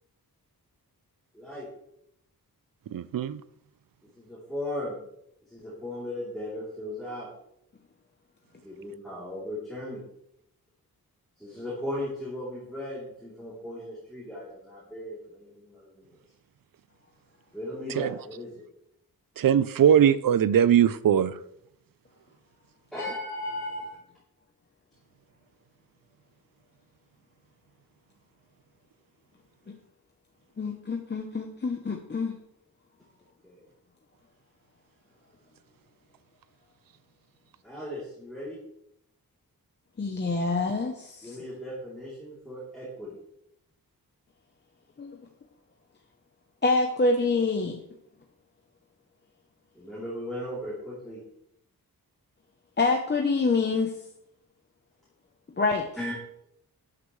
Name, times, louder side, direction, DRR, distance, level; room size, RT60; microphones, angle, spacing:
voice 1, 1.3-1.7 4.1-5.0 5.5-7.3 8.6-10.0 11.4-16.2 17.5-18.6 22.9-24.0 33.4-33.5 37.6-38.6 41.2-43.2 49.7-51.2 56.0-56.1, left 1 dB, ahead, 3.3 m, -37 dB
voice 2, 2.9-3.4 17.9-18.1 19.4-21.3, right 9 dB, 65° right, 0.6 m, -21 dB
voice 3, 30.6-32.4 40.0-41.4 45.0-45.2 46.6-47.8 52.8-53.9 55.6-55.9, left 3 dB, 30° left, 0.9 m, -26 dB
12.5 x 9.8 x 3.2 m
wide cardioid pair, 165°, 37 cm